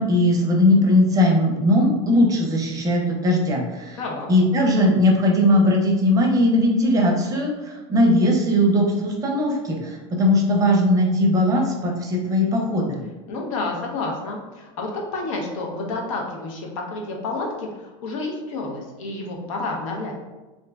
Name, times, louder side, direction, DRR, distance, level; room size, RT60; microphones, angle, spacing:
voice 1, 0.0-4.0 4.3-13.0, left 1 dB, 20° right, 0 dB, 0.6 m, -19 dB
voice 2, 4.0-4.3 13.3-20.1, left 3 dB, 90° left, 0 dB, 0.8 m, -30 dB
2.6 x 2.1 x 3.4 m, 1.1 s
supercardioid pair, 130°, 16 cm